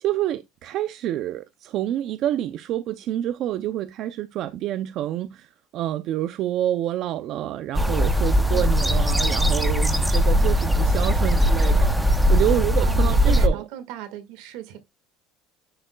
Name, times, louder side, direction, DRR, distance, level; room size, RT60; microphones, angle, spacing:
voice 1, 0.0-13.6, right 12 dB, 45° right, 0.4 m, -28 dB
sound 1, 7.7-13.5, equal, 5° right, 0.6 m, -20 dB
voice 2, 12.8-14.8, right 12 dB, 75° right, 1.8 m, -37 dB
10.0 x 6.4 x 2.2 m
cardioid pair, 165°, 0 cm